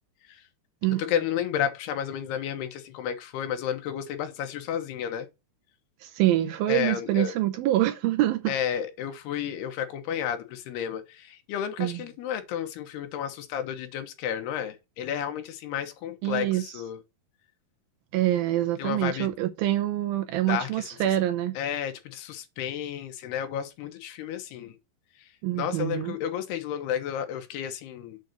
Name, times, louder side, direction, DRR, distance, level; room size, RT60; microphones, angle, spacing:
voice 1, 1.0-5.3 6.7-7.3 8.5-16.5 16.7-17.0 18.8-19.3 20.5-20.7 21.6-24.7 25.5-28.2, left 9 dB, 85° left, 3.2 m, -31 dB
voice 2, 6.0-8.6 11.8-12.0 16.2-16.8 18.1-21.6 25.4-26.2, right 14 dB, 80° right, 2.3 m, -25 dB
8.4 x 3.9 x 6.5 m
omnidirectional pair, 4.6 m